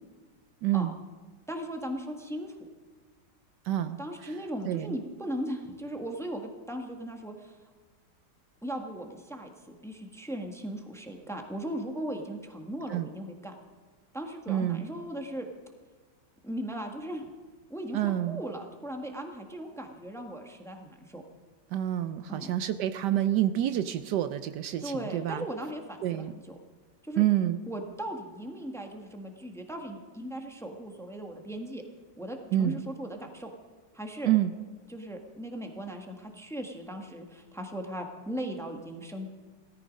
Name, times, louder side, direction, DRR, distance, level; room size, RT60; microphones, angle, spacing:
voice 1, 0.6-1.0 3.6-4.3 4.6-4.9 12.9-13.1 14.5-14.8 17.9-18.4 21.7-25.4 26.0-26.3 27.2-27.6 32.5-32.8 34.2-34.5, right 12 dB, 75° right, 11 dB, 1.2 m, -28 dB
voice 2, 1.5-2.5 3.8-7.6 8.6-13.5 14.1-15.5 16.4-17.3 17.7-21.2 22.3-22.5 24.8-26.4 27.0-27.2 27.7-31.8 32.2-33.5 33.9-34.3 34.9-39.3, right 1 dB, ahead, 3 dB, 1.3 m, -38 dB
17.5 x 14.0 x 5.3 m, 1.4 s
omnidirectional pair, 1.9 m